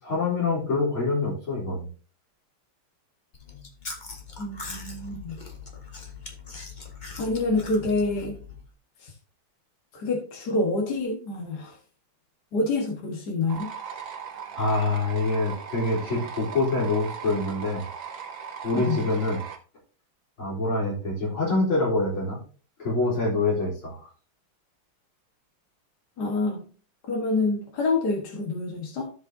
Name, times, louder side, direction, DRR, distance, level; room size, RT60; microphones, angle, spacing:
voice 1, 0.0-1.9 14.5-17.9 18.6-19.4 20.4-22.4 22.8-24.0, left 2 dB, 75° left, -5 dB, 4.5 m, -25 dB
Chewing mastication, 3.3-8.7, left 4 dB, 30° left, 1.0 m, -41 dB
voice 2, 4.4-5.4 7.2-8.4 9.0-9.1 9.9-11.8 12.5-13.7 18.8-19.0 26.2-26.6 27.1-29.1, left 3 dB, 50° left, 0 dB, 2.0 m, -27 dB
sound 1, 13.5-19.6, right 7 dB, 65° right, 1.8 m, -38 dB
14.5 x 5.1 x 2.7 m, 0.39 s
omnidirectional pair, 2.3 m